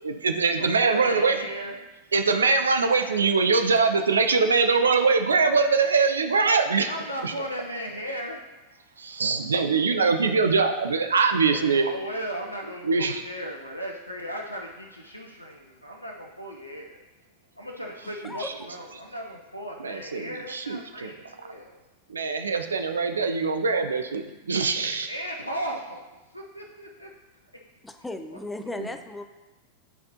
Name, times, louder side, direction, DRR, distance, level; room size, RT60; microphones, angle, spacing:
voice 1, 0.0-1.4 2.1-6.9 7.2-7.3 9.0-11.9 12.8-13.2 18.4-18.5 19.8-21.1 22.1-25.1 28.8-28.9, right 4 dB, 70° right, 6 dB, 0.4 m, -23 dB
voice 2, 0.6-1.8 6.8-8.6 11.5-17.0 17.6-21.8 25.1-26.0 26.3-27.1, equal, 90° left, 0 dB, 0.6 m, -36 dB
voice 3, 27.8-29.2, left 2 dB, 5° left, 7 dB, 0.5 m, -36 dB
10.0 x 4.2 x 2.8 m, 1.1 s
figure-of-eight pair, 90°, 0 cm